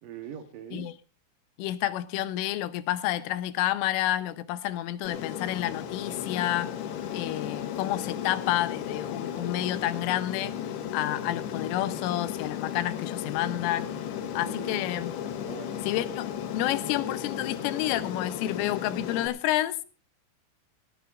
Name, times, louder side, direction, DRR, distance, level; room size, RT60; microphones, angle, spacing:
voice 1, 0.0-0.9 14.2-14.9 15.5-15.8, right 9 dB, 85° right, 1.9 m, -42 dB
voice 2, 1.6-6.7 7.1-10.6 10.9-13.9 14.3-15.1 15.8-16.3 16.5-19.8, left 14 dB, 90° left, 3.5 m, -29 dB
Aircraft, 5.1-19.3, left 9 dB, 70° left, 2.8 m, -35 dB
18.5 x 15.5 x 2.5 m
omnidirectional pair, 5.6 m